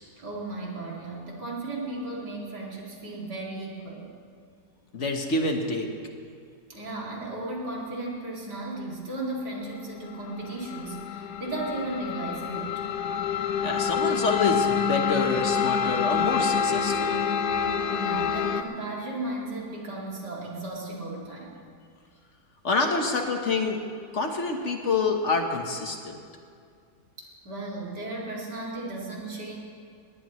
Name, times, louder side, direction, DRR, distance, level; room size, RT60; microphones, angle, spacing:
voice 1, 0.2-4.1 6.7-12.8 17.7-21.5 27.2-29.6, right 2 dB, 85° right, -3 dB, 3.2 m, -35 dB
voice 2, 4.9-5.9 13.6-17.2 22.6-23.8 24.1-26.2, left 3 dB, 50° left, 3 dB, 1.4 m, -27 dB
sound 1, 10.1-18.6, left 7 dB, 75° left, 1.3 m, -27 dB
20.0 x 18.5 x 3.1 m, 2.2 s
omnidirectional pair, 1.7 m